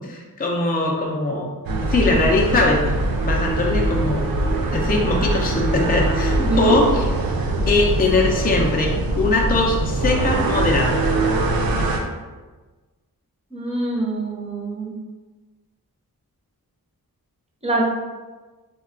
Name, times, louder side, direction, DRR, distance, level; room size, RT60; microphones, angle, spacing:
voice 1, 0.0-1.5 1.9-2.9 3.2-4.4 4.7-7.1 7.7-11.0, left 2 dB, 25° left, -1 dB, 0.4 m, -21 dB
sound 1, 1.7-12.0, right 2 dB, 70° right, 0.5 m, -22 dB
voice 2, 6.3-6.8 13.5-14.9 17.6-17.8, right 2 dB, 15° right, -4 dB, 0.7 m, -24 dB
2.2 x 2.2 x 3.7 m, 1.3 s
cardioid pair, 70°, 37 cm